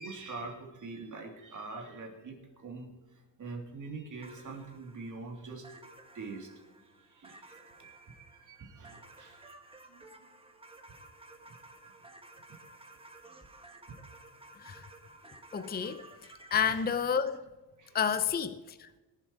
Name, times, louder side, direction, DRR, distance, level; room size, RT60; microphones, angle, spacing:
voice 1, 0.0-2.9 3.4-5.7 6.1-6.5 7.1-9.4 9.9-10.0 16.6-16.8 17.8-18.0, right 3 dB, 45° right, 3.2 m, -44 dB
sound 1, 4.2-17.0, right 2 dB, 15° right, 1.4 m, -54 dB
voice 2, 15.5-16.1 16.5-17.4 17.9-18.9, left 7 dB, 25° left, 0.6 m, -30 dB
21.0 x 7.6 x 4.8 m
cardioid pair, 115°, 41 cm